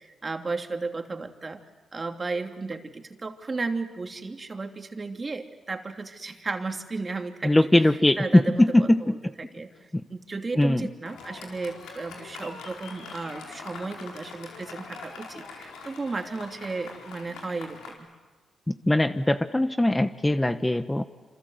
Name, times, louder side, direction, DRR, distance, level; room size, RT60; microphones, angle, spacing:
voice 1, 0.0-1.6 1.9-7.7 8.2-18.1, right 3 dB, 35° right, 5 dB, 2.9 m, -34 dB
voice 2, 7.4-9.1 9.9-10.0 10.6-10.9 18.7-21.0, left 1 dB, 15° left, 10 dB, 1.2 m, -21 dB
Fireworks, 11.0-17.9, left 4 dB, 90° left, 4.6 m, -43 dB
27.0 x 26.5 x 8.1 m, 1.4 s
supercardioid pair, 55°, 0 cm